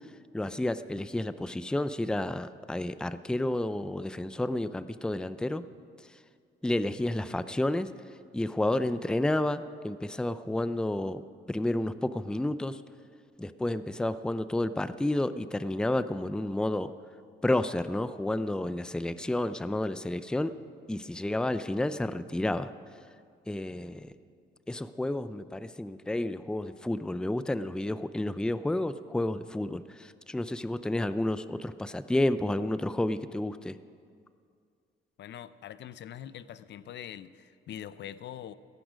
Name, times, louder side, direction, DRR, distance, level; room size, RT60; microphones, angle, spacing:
voice 1, 0.3-5.6 6.6-7.9 8.3-12.8 13.4-16.9 17.4-20.5 20.9-22.7 23.5-24.1 24.7-33.8, left 1 dB, 5° left, 13 dB, 0.5 m, -30 dB
voice 2, 35.2-38.5, left 10 dB, 65° left, 15 dB, 0.6 m, -43 dB
17.5 x 14.5 x 5.1 m, 2.2 s
cardioid pair, 90°, 20 cm